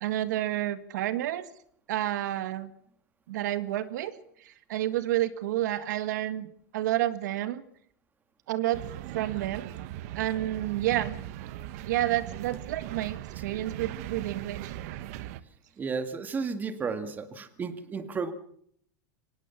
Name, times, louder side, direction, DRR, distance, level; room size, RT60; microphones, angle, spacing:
voice 1, 0.0-1.5 1.9-2.7 3.3-4.1 4.4-7.6 8.5-8.8 9.1-9.7 10.1-11.1 11.8-14.7, right 14 dB, 75° right, 12 dB, 1.7 m, -30 dB
sound 1, 8.7-15.4, right 13 dB, 55° right, 1.2 m, -39 dB
voice 2, 15.8-18.3, right 5 dB, 20° right, 9 dB, 2.0 m, -33 dB
24.0 x 19.0 x 7.1 m, 0.65 s
supercardioid pair, 150°, 10 cm